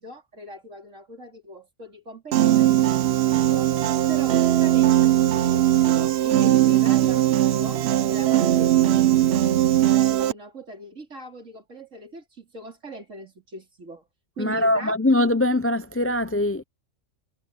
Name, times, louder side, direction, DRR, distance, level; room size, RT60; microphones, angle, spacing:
voice 1, 0.0-3.7 4.1-7.8 8.1-9.5 9.8-14.1 14.4-15.0, right 1 dB, 85° right, 4.2 m, -40 dB
Piano, 2.3-10.3, right 13 dB, 65° right, 0.8 m, -19 dB
voice 2, 14.4-16.6, left 1 dB, 20° left, 0.3 m, -22 dB
omnidirectional pair, 1.3 m